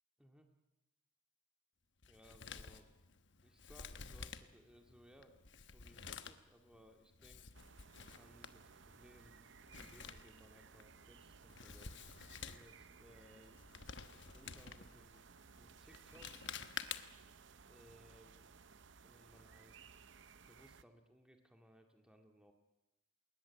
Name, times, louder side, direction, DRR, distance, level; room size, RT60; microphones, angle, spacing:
voice 1, 0.2-0.5 2.1-2.9 3.4-7.5 8.0-9.5 9.7-12.0 12.4-13.6 14.1-15.3 15.6-16.4 17.7-18.5 19.0-19.8 20.5-22.5, equal, 5° right, 4 dB, 2.0 m, -64 dB
Male speech man speaking, 2.0-17.3, left 6 dB, 55° left, 1.1 m, -52 dB
sound 1, 7.5-20.8, right 5 dB, 60° right, 0.7 m, -60 dB
20.5 x 20.0 x 9.2 m, 0.96 s
head